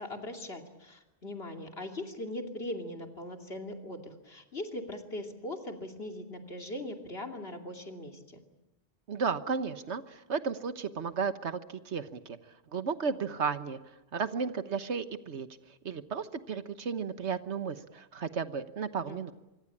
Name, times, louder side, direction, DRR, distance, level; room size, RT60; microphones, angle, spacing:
voice 1, 0.0-8.4 19.0-19.3, left 1 dB, 60° left, 4 dB, 3.0 m, -40 dB
voice 2, 9.1-11.6 11.8-12.4 12.7-13.8 14.1-15.5 15.8-19.3, right 5 dB, 80° right, 11 dB, 1.5 m, -33 dB
25.5 x 24.0 x 8.6 m, 1.0 s
omnidirectional pair, 1.2 m